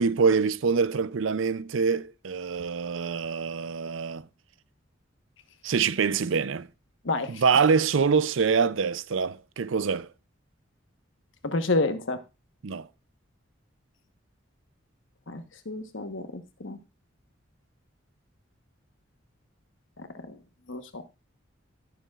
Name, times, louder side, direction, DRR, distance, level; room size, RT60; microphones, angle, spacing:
voice 1, 0.0-4.3 5.6-6.7 7.3-10.1 12.6-12.9, right 5 dB, 80° right, 0.5 m, -25 dB
voice 2, 7.0-7.4 11.4-12.2 15.3-16.8 20.0-20.4 20.7-21.0, left 2 dB, 75° left, 1.2 m, -30 dB
19.0 x 7.0 x 2.4 m
head